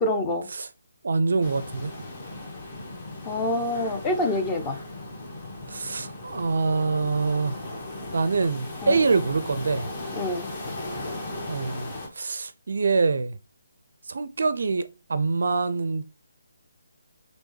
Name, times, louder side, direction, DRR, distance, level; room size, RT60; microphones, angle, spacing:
voice 1, 0.0-0.5 3.2-4.8 8.8-9.0 10.1-10.5, left 1 dB, 15° left, 0.6 m, -26 dB
voice 2, 1.0-1.9 5.7-7.6 8.1-9.9 11.5-13.4 14.1-16.0, right 4 dB, 60° right, 0.4 m, -25 dB
sound 1, 1.4-12.1, left 2 dB, 30° left, 1.3 m, -37 dB
5.2 x 3.1 x 3.2 m
figure-of-eight pair, 145°, 0 cm